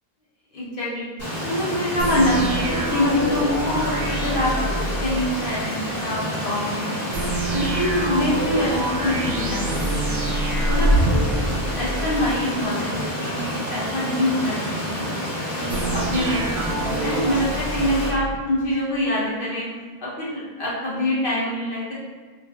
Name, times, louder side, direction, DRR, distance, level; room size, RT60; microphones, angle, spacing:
voice 1, 0.5-1.1 1.4-4.5 4.9-7.1 7.5-10.1 10.6-11.0 11.8-12.9 13.2-15.1 15.5-19.7 20.0-21.9, left 1 dB, 60° left, -7 dB, 1.1 m, -25 dB
Stream, 1.2-18.1, equal, 15° left, 1.0 m, -29 dB
sound 1, 2.0-5.3 7.1-12.3 15.7-18.3, right 1 dB, 90° right, 0.9 m, -26 dB
Acoustic guitar, 2.3-5.8, right 1 dB, 30° right, 0.8 m, -40 dB
3.9 x 2.5 x 2.3 m, 1.5 s
omnidirectional pair, 1.0 m